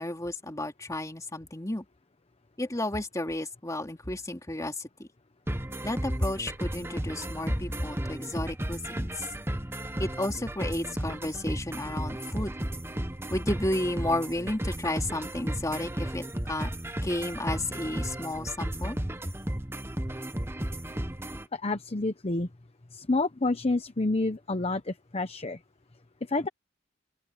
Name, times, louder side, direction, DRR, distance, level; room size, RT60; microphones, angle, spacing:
voice 1, 0.0-1.8 2.6-5.1 5.8-9.2 10.0-12.5 13.3-16.7 17.0-19.0, left 1 dB, 15° left, 2.9 m, -32 dB
sound 1, 5.5-21.4, right 1 dB, 15° right, 1.1 m, -34 dB
voice 2, 21.5-22.5 22.9-25.6 26.3-26.5, left 2 dB, 35° left, 0.9 m, -28 dB
open air
head